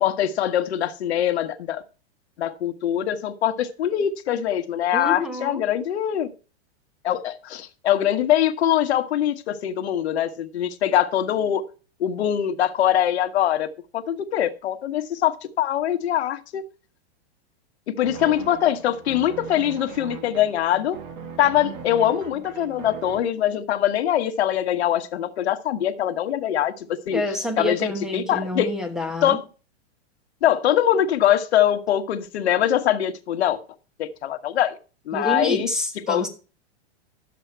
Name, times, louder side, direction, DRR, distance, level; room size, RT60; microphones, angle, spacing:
voice 1, 0.0-1.8 2.4-6.3 7.0-11.6 12.0-16.6 18.0-21.0 21.4-27.2 27.6-28.7 29.2-29.4 30.4-33.6 34.0-34.8 35.1-35.7 36.1-36.2, left 11 dB, 75° left, 1.3 m, -23 dB
voice 2, 4.9-5.7 27.1-29.4 35.1-36.3, left 1 dB, ahead, 1.1 m, -28 dB
sound 1, 18.0-23.2, right 6 dB, 45° right, 2.1 m, -39 dB
11.5 x 7.4 x 4.5 m
supercardioid pair, 160°, 33 cm